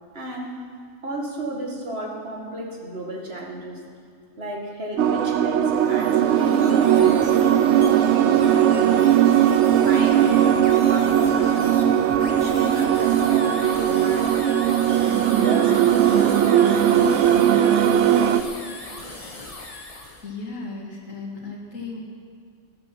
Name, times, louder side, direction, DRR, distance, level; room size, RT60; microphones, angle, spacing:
voice 1, 0.1-0.6 1.0-3.8 4.4-7.5 7.8-9.4 9.8-10.5 10.8-11.8 12.2-14.7 15.3-15.9 16.1-17.8 18.1-18.5, right 1 dB, 50° right, -1 dB, 2.3 m, -33 dB
sound 1, 5.0-18.4, right 10 dB, 70° right, 0.8 m, -18 dB
sound 2, 5.6-20.3, left 2 dB, 30° left, 1.3 m, -38 dB
voice 2, 20.2-22.0, left 3 dB, 90° left, -1 dB, 2.7 m, -35 dB
14.0 x 13.5 x 6.1 m, 2.3 s
omnidirectional pair, 1.3 m